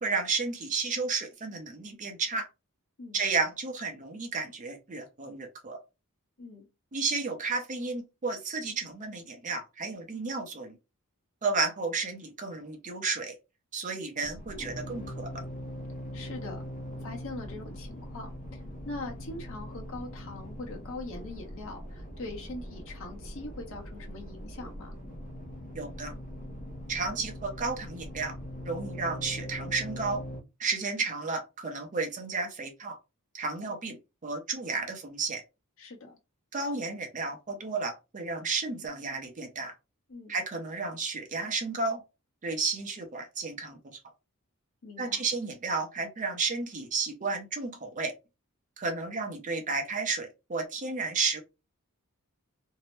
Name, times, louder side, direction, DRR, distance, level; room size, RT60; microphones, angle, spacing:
voice 1, 0.0-2.5 3.1-5.8 6.9-10.8 11.4-13.3 13.7-15.3 25.7-26.1 26.9-28.3 28.6-30.2 30.6-33.0 33.3-34.0 34.2-35.4 36.5-39.7 40.3-42.0 42.4-43.8 45.0-48.1 48.8-51.4, right 4 dB, 35° right, 0.6 m, -32 dB
sound 1, 14.2-30.4, equal, 40° left, 0.7 m, -41 dB
voice 2, 16.1-16.6 17.0-18.6 18.8-25.0 35.8-36.2 40.1-40.3 44.8-45.2, left 2 dB, 65° left, 0.9 m, -42 dB
2.7 x 2.0 x 3.1 m
head